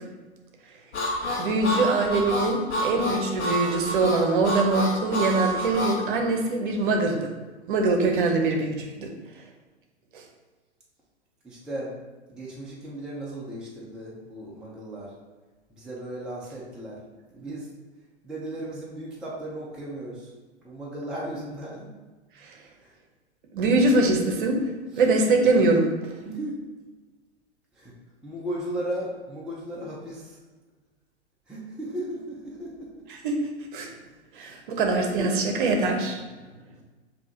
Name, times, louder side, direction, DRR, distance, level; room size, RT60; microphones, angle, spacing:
Harmonica, 0.9-6.0, equal, 75° left, 1.2 m, -28 dB
voice 1, 1.4-7.3 7.7-9.1 10.1-10.2 22.4-22.6 23.5-24.6 25.0-25.9 33.1-33.4 33.7-33.9 34.3-36.2, right 3 dB, 50° right, 2 dB, 0.8 m, -23 dB
voice 2, 11.4-12.0 12.3-15.1 15.7-17.0 17.3-17.7 18.2-20.3 20.6-21.9 22.8-22.9 24.9-25.0 26.2-26.6 27.7-27.9 28.2-30.4 31.5-33.1 34.0-34.1 34.4-34.6 35.2-35.5, right 1 dB, ahead, -5 dB, 0.5 m, -36 dB
6.8 x 2.8 x 2.7 m, 1.3 s
figure-of-eight pair, 100°, 34 cm